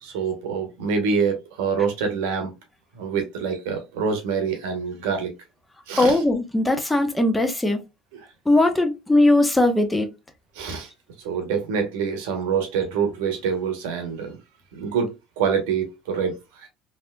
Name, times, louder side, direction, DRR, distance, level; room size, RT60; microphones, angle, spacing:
voice 1, 0.0-2.5 2.9-5.3 5.9-6.2 8.1-8.3 10.5-10.9 11.2-14.4 14.7-16.7, right 6 dB, 70° right, 1.0 m, -26 dB
voice 2, 6.0-7.8 8.5-10.1, left 2 dB, 10° left, 0.8 m, -19 dB
3.3 x 2.6 x 2.3 m
hypercardioid pair, 70°, 0 cm